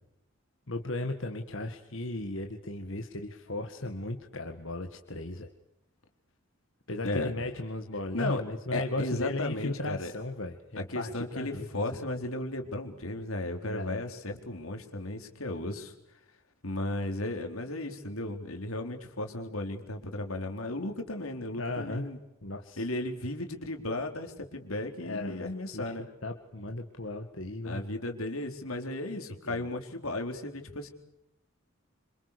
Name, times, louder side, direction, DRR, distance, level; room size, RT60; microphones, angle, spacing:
voice 1, 0.7-5.5 6.9-11.7 13.6-14.0 21.6-22.1 22.4-22.9 25.0-25.5 25.7-27.9, left 2 dB, 65° left, 4 dB, 2.0 m, -36 dB
voice 2, 7.0-7.4 8.1-8.4 8.7-10.1 10.8-15.9 16.6-22.2 22.8-26.1 27.6-30.9, left 2 dB, 85° left, 5 dB, 4.1 m, -35 dB
27.0 x 27.0 x 6.9 m, 0.84 s
head